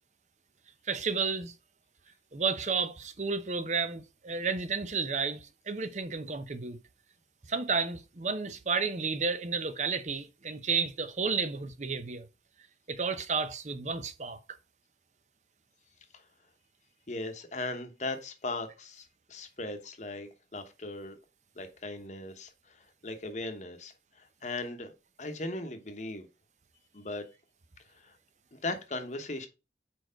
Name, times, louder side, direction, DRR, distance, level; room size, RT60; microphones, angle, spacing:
voice 1, 0.9-1.5 2.3-6.8 7.5-12.3 12.9-14.4, right 5 dB, 40° right, 0.6 m, -32 dB
voice 2, 17.1-21.2 21.6-22.5 23.0-23.9 24.4-24.9 25.2-26.3 26.9-27.2 28.0-28.1 28.5-29.5, left 2 dB, 40° left, 1.0 m, -38 dB
4.6 x 4.4 x 5.0 m
head